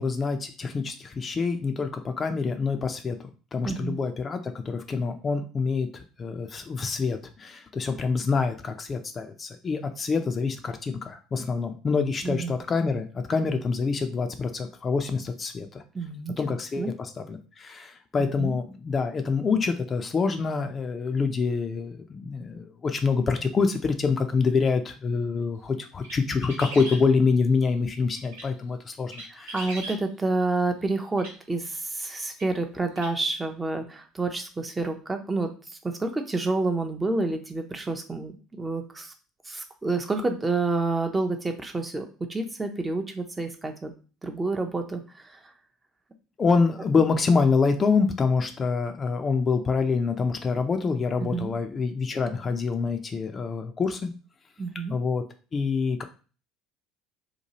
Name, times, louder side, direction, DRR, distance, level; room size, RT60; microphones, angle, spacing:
voice 1, 0.0-15.8 16.4-29.6 46.4-54.1 54.9-55.2 55.5-56.0, left 4 dB, 35° left, 7 dB, 0.4 m, -26 dB
voice 2, 3.6-4.0 12.2-12.6 15.9-16.3 16.8-16.9 18.4-18.5 29.3-39.1 39.5-43.9 44.2-45.4 51.2-51.5 54.6-54.9, right 3 dB, 20° right, 5 dB, 0.5 m, -29 dB
sound 1, 26.0-27.0 28.2-28.5 29.1-30.0 31.2-31.4 32.4-32.5 33.0-33.1, right 1 dB, 80° right, 0.8 m, -38 dB
2.9 x 2.2 x 2.8 m, 0.36 s
hypercardioid pair, 65°, 0 cm